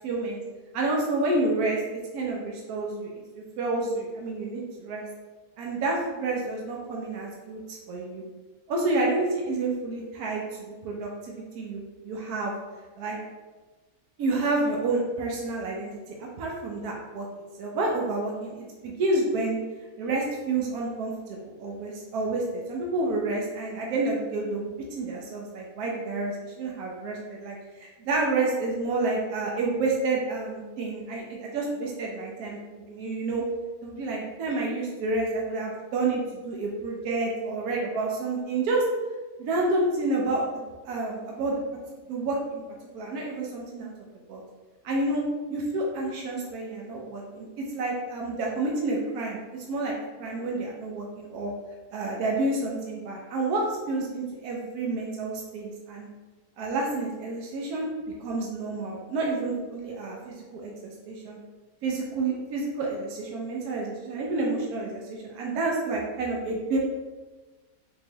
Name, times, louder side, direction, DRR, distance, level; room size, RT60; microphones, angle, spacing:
voice 1, 0.0-0.4 0.7-5.0 5.6-8.2 8.7-10.4 10.8-12.5 13.0-13.2 14.2-17.3 17.6-19.6 20.0-33.4 33.8-38.8 39.4-40.5 40.8-41.5 42.1-42.6 42.9-43.9 44.3-44.4 44.8-45.2 45.5-47.5 47.7-49.9 50.2-51.5 51.9-56.1 56.6-57.9 58.2-61.4 61.8-66.8, right 2 dB, 85° right, -2 dB, 1.1 m, -29 dB
3.7 x 3.0 x 2.9 m, 1.3 s
omnidirectional pair, 1.5 m